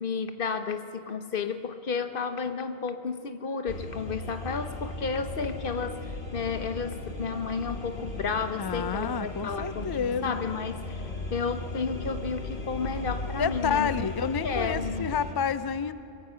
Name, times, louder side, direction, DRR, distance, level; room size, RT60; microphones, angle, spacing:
voice 1, 0.0-11.0 11.3-14.1 14.4-15.1, left 5 dB, 60° left, 9 dB, 1.1 m, -32 dB
sound 1, 3.7-15.3, left 2 dB, 80° left, 2.1 m, -37 dB
voice 2, 8.6-10.3 13.4-15.9, left 6 dB, 40° left, 14 dB, 0.3 m, -29 dB
23.5 x 21.5 x 5.7 m, 3.0 s
omnidirectional pair, 1.0 m